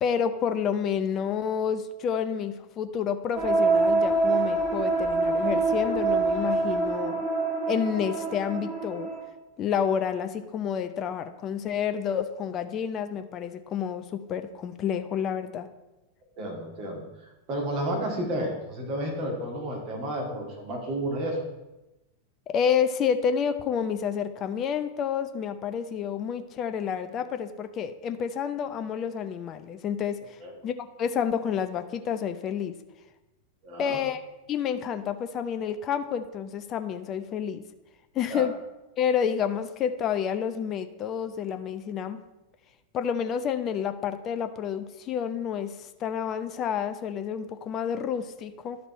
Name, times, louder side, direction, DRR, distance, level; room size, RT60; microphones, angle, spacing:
voice 1, 0.0-7.3 7.7-9.1 9.6-15.7 22.5-30.4 30.6-30.7 31.0-32.7 33.8-34.2 34.5-37.6 38.1-38.5 39.0-42.2 42.9-48.8, left 8 dB, 30° left, 9 dB, 0.5 m, -29 dB
sound 1, 3.3-9.2, right 3 dB, 20° right, 2.5 m, -25 dB
voice 2, 16.4-17.0 17.5-21.4 30.4-30.5 33.6-34.0 38.3-38.5, right 1 dB, 40° right, -1 dB, 2.0 m, -31 dB
11.5 x 4.1 x 4.3 m, 0.99 s
figure-of-eight pair, 90°, 0 cm